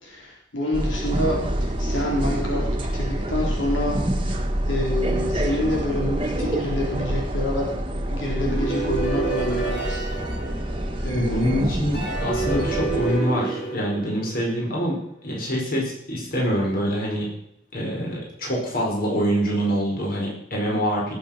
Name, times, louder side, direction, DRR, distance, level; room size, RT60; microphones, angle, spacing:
voice 1, 0.0-4.0 4.3-7.7 8.1-10.0 11.0-11.6, left 1 dB, 85° left, -2 dB, 4.0 m, -28 dB
sound 1, 0.7-13.2, right 1 dB, 25° right, 1.6 m, -27 dB
sound 2, 8.4-11.3 11.9-14.8, right 3 dB, 70° left, 6.6 m, -29 dB
voice 2, 11.1-17.3 17.7-21.1, equal, 50° left, -3 dB, 5.0 m, -25 dB
18.5 x 8.0 x 5.8 m, 0.76 s
head